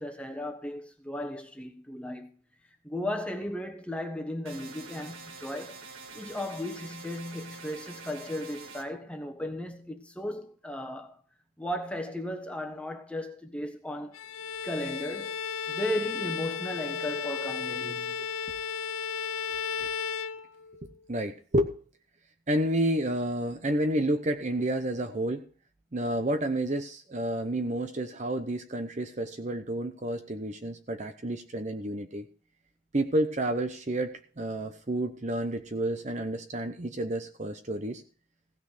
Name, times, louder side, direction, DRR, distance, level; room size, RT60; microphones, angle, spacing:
voice 1, 0.0-2.3 2.8-5.8 6.1-11.2 11.6-14.2 14.6-15.4 15.7-18.3, left 1 dB, 5° left, 1.3 m, -35 dB
sound 1, 4.5-8.9, right 4 dB, 85° right, 1.8 m, -46 dB
Bowed string instrument, 14.1-20.9, left 6 dB, 85° left, 0.6 m, -34 dB
voice 2, 21.1-21.7 22.5-25.5 25.9-32.3 32.9-38.0, right 1 dB, 35° right, 0.8 m, -30 dB
16.0 x 6.0 x 6.6 m
head